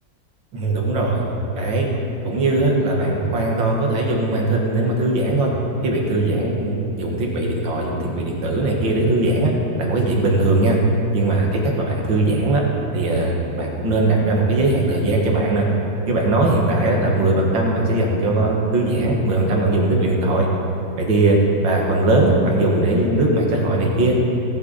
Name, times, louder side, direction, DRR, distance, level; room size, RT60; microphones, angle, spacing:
voice 1, 0.5-1.2 1.6-1.9 2.2-5.5 5.8-10.8 11.1-12.6 12.9-15.7 16.1-20.5 21.0-21.4 21.6-24.2, right 2 dB, 75° right, -1 dB, 2.4 m, -19 dB
18.0 x 8.3 x 4.2 m, 2.8 s
omnidirectional pair, 2.1 m